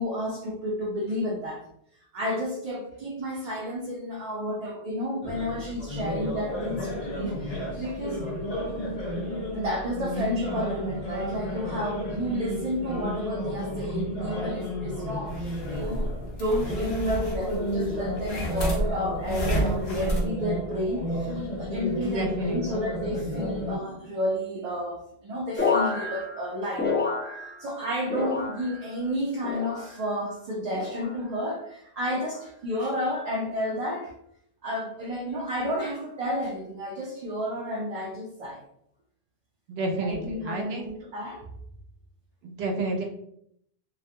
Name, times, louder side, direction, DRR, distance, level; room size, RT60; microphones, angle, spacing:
voice 1, 0.0-1.6 2.1-8.2 9.5-27.0 27.6-34.1 34.6-38.6 39.9-41.5, equal, 55° right, -3 dB, 0.4 m, -31 dB
sound 1, 5.2-23.8, equal, 45° left, 0.7 m, -32 dB
sound 2, 15.3-20.3, equal, 75° left, 0.9 m, -31 dB
voice 2, 22.0-22.6 39.7-40.9 42.4-43.0, right 2 dB, 85° right, 2 dB, 0.8 m, -30 dB
sound 3, 25.6-27.8 28.1-28.9 29.4-30.1 30.7-31.2 32.1-32.5 33.4-33.7, left 4 dB, 15° left, 0.3 m, -30 dB
2.3 x 2.1 x 2.6 m, 0.69 s
omnidirectional pair, 1.0 m